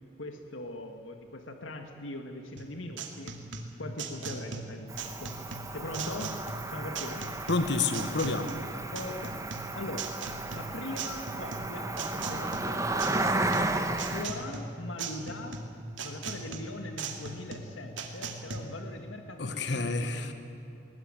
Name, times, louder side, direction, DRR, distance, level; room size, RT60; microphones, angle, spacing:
voice 1, 0.2-3.4 3.8-5.4 5.7-6.4 6.7-7.3 8.9-9.4 9.7-10.2 10.5-13.3 14.1-15.6 16.0-20.3, left 1 dB, 85° left, 5 dB, 1.7 m, -41 dB
sound 1, 2.6-18.6, right 4 dB, 80° right, 2.4 m, -39 dB
Cricket, 4.9-14.2, right 2 dB, 15° right, 1.2 m, -33 dB
voice 2, 7.5-8.5 19.4-20.3, left 3 dB, 60° left, 8 dB, 1.3 m, -29 dB
20.5 x 19.0 x 9.8 m, 2.9 s
head